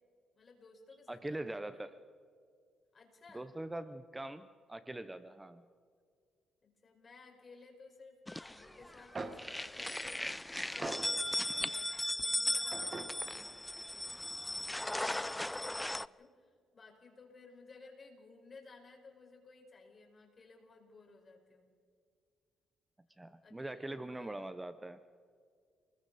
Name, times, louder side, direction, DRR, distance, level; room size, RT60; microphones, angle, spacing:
voice 1, 0.3-1.8 2.9-3.5 6.6-10.3 10.6-11.3 11.6-13.6 13.9-14.2 14.4-21.7 23.4-24.5, left 3 dB, 40° left, 2 dB, 5.3 m, -58 dB
voice 2, 1.1-2.0 3.3-5.6 23.2-25.0, right 1 dB, 15° right, 11 dB, 0.8 m, -42 dB
sound 1, 8.3-9.0 9.3-16.1, left 1 dB, 10° left, 0.4 m, -37 dB
sound 2, 8.8-8.9 9.1-11.8 12.7-14.6, right 3 dB, 30° right, 1.6 m, -46 dB
29.5 x 21.0 x 4.2 m, 2.1 s
cardioid pair, 90°, 0 cm